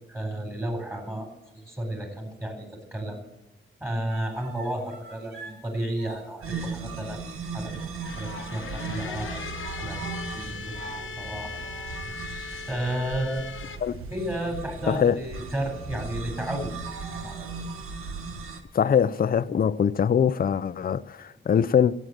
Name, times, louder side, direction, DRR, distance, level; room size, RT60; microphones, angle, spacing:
voice 1, 0.1-1.3 1.5-3.2 3.8-7.2 7.5-7.8 8.1-9.5 9.8-10.8 11.2-11.6 12.1-13.7 14.1-16.7 17.1-17.5, right 1 dB, 10° right, 3.8 m, -32 dB
sound 1, 4.1-17.9, right 3 dB, 70° right, 4.3 m, -46 dB
Bluebottle in bottle, 6.4-18.6, right 4 dB, 85° right, 1.4 m, -37 dB
sound 2, 8.0-13.8, left 6 dB, 70° left, 1.0 m, -39 dB
voice 2, 18.7-21.9, left 8 dB, 45° left, 0.5 m, -22 dB
14.5 x 8.6 x 7.7 m
wide cardioid pair, 110°, 21 cm